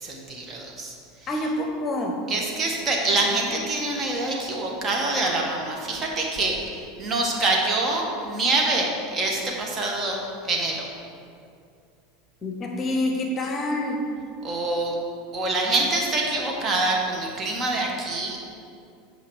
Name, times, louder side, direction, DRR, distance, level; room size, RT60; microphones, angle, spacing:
voice 1, 0.0-0.9 2.3-10.8 14.4-14.9 15.3-18.4, right 2 dB, 30° right, -1 dB, 1.6 m, -25 dB
voice 2, 1.3-2.2 12.4-14.0, left 1 dB, 30° left, 2 dB, 1.0 m, -27 dB
8.7 x 5.1 x 4.9 m, 2.4 s
hypercardioid pair, 80°, 0 cm